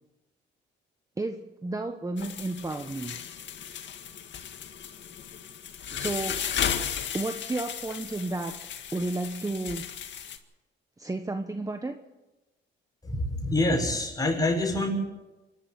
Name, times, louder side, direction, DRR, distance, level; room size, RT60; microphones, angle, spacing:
voice 1, 1.2-3.2 5.9-6.5 7.1-8.6 8.9-9.9 11.0-12.0, right 2 dB, 15° right, 7 dB, 1.2 m, -32 dB
sound 1, 2.2-10.4, left 8 dB, 65° left, 2.0 m, -35 dB
voice 2, 13.0-14.9, left 2 dB, 20° left, 1 dB, 6.8 m, -26 dB
26.5 x 12.5 x 7.8 m, 1.1 s
cardioid pair, 90°, 20 cm